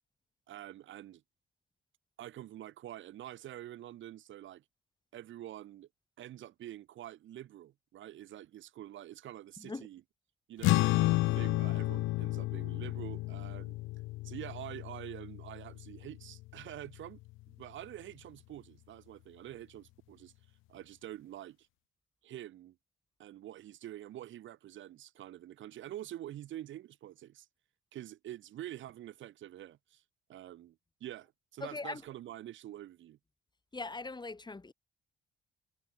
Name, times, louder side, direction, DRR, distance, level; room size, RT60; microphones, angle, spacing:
voice 1, 0.5-1.2 2.2-4.6 5.1-5.9 6.2-10.0 10.5-13.8 14.2-17.2 17.5-20.3 20.7-21.6 22.2-22.7 23.2-27.5 27.9-30.0 30.3-33.2, right 13 dB, 75° right, 1.4 m, -46 dB
voice 2, 9.6-9.9 31.6-32.0 33.7-34.7, left 3 dB, 20° left, 4.7 m, -40 dB
sound 1, 10.6-17.3, left 20 dB, 90° left, 0.4 m, -32 dB
cardioid pair, 90°, 20 cm